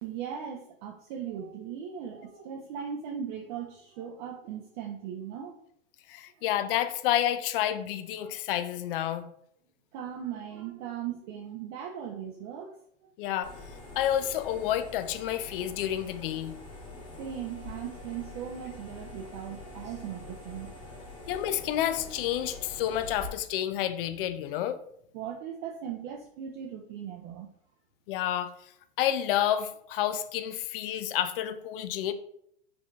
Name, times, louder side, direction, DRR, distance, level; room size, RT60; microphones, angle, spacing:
voice 1, 0.0-5.6 8.2-8.3 9.9-12.8 17.2-20.7 21.1-21.3 25.1-27.5, right 8 dB, 45° right, 4 dB, 0.5 m, -38 dB
voice 2, 6.1-9.2 13.2-13.5 14.0-16.5 21.3-24.8 28.1-28.5 29.0-32.1, left 11 dB, 55° left, 11 dB, 0.4 m, -29 dB
sound 1, 13.4-23.3, left 2 dB, 15° left, 1.2 m, -45 dB
4.6 x 2.7 x 2.4 m, 0.71 s
hypercardioid pair, 95°, 33 cm